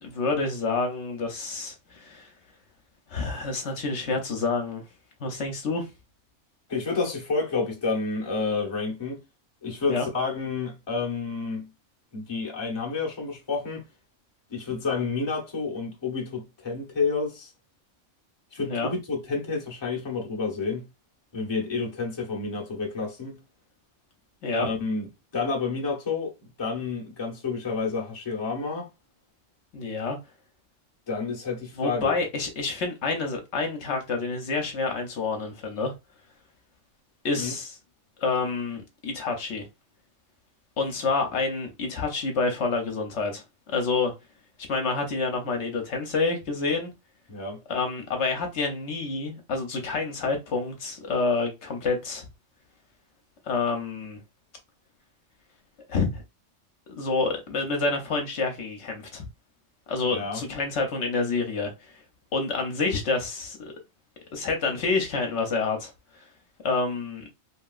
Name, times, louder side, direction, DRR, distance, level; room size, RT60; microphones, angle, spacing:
voice 1, 0.0-2.3 3.1-4.8 5.2-5.9 9.9-10.1 18.6-18.9 24.4-24.7 29.7-30.2 31.8-35.9 37.2-37.8 38.2-39.7 40.8-44.1 44.7-46.9 47.7-52.3 53.5-54.2 55.9-56.2 56.9-59.2 59.9-62.0 62.3-63.7 64.3-65.9 66.6-67.2, left 4 dB, 70° left, 1.0 m, -28 dB
voice 2, 6.7-9.2 9.6-11.7 12.1-13.8 14.5-17.5 18.5-20.9 21.3-23.4 24.5-25.1 25.3-26.3 26.6-28.9 31.1-32.1 37.4-37.5 47.3-47.6 60.1-60.4, left 4 dB, 25° left, 0.7 m, -29 dB
2.9 x 2.8 x 2.3 m
omnidirectional pair, 1.3 m